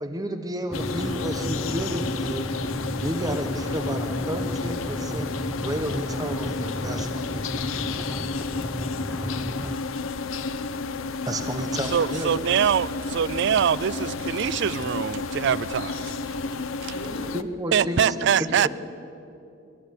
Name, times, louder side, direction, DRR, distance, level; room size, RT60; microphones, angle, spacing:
voice 1, 0.0-2.5 3.0-5.3 5.6-7.3 11.3-12.3 17.3-18.0 18.4-18.7, equal, 20° right, 1.0 m, -31 dB
sound 1, 0.7-17.4, left 4 dB, 85° left, 0.7 m, -31 dB
sound 2, 0.7-9.8, equal, ahead, 0.7 m, -33 dB
voice 2, 11.9-16.4 16.8-16.9 17.7-18.7, right 8 dB, 60° right, 0.4 m, -24 dB
voice 3, 16.3-17.2 17.7-18.7, equal, 45° left, 6.1 m, -40 dB
23.0 x 12.5 x 9.6 m
head